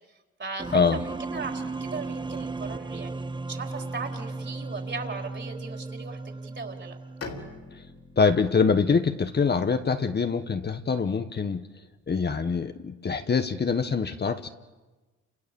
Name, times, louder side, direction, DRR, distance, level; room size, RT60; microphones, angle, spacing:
voice 1, 0.4-7.0, right 4 dB, 40° right, 3 dB, 4.4 m, -38 dB
sound 1, 0.6-7.6, right 3 dB, 15° right, 0.8 m, -35 dB
Bowed string instrument, 7.2-10.8, left 3 dB, 55° left, 3.9 m, -45 dB
voice 2, 8.2-11.7 12.1-14.5, left 5 dB, 35° left, 8 dB, 1.3 m, -24 dB
29.5 x 27.5 x 7.1 m, 1.2 s
cardioid pair, 90°, 30 cm